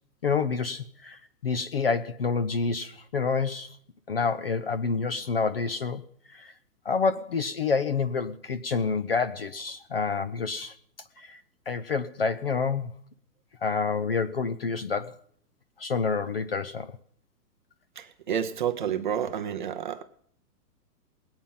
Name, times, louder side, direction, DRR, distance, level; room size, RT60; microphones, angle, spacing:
voice 1, 0.2-3.8 4.1-6.0 6.3-6.5 6.9-10.7 11.2-11.4 11.7-12.9 13.6-15.2 15.8-17.0, left 5 dB, 40° left, 14 dB, 0.5 m, -28 dB
voice 2, 18.0-20.0, right 8 dB, 30° right, 6 dB, 0.6 m, -30 dB
19.5 x 8.8 x 5.5 m, 0.62 s
hypercardioid pair, 170°, 48 cm